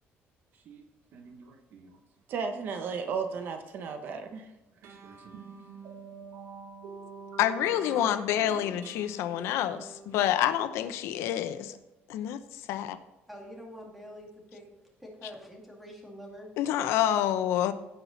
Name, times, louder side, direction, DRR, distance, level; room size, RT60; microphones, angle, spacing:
voice 1, 1.1-2.0 2.3-4.5 5.0-5.4, right 5 dB, 50° right, 1.2 m, -36 dB
sound 1, 4.8-11.7, right 4 dB, 70° right, 1.4 m, -47 dB
voice 2, 7.4-11.8 12.1-12.4 12.7-13.0 16.6-17.7, left 11 dB, 80° left, 0.7 m, -27 dB
voice 3, 8.5-9.1 13.3-14.7 15.0-16.5, equal, ahead, 2.5 m, -46 dB
16.0 x 5.9 x 4.1 m
cardioid pair, 165°, 4 cm